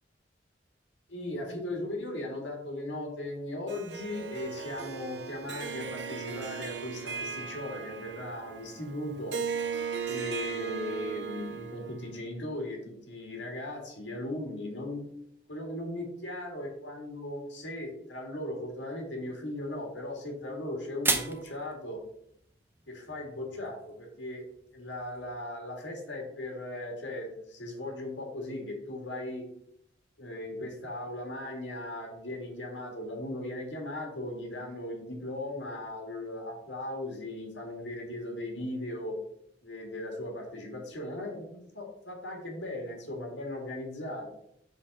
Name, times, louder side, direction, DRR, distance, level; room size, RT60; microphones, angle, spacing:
voice 1, 1.1-9.3 10.0-15.0 15.5-22.0 22.9-24.4 24.7-29.5 30.2-39.2 39.6-44.3, left 1 dB, 85° left, 1 dB, 1.8 m, -38 dB
Harp, 3.7-12.1, right 6 dB, 70° right, 0.6 m, -37 dB
sound 1, 19.4-25.4, right 3 dB, 10° right, 0.5 m, -38 dB
5.3 x 3.6 x 5.2 m, 0.72 s
head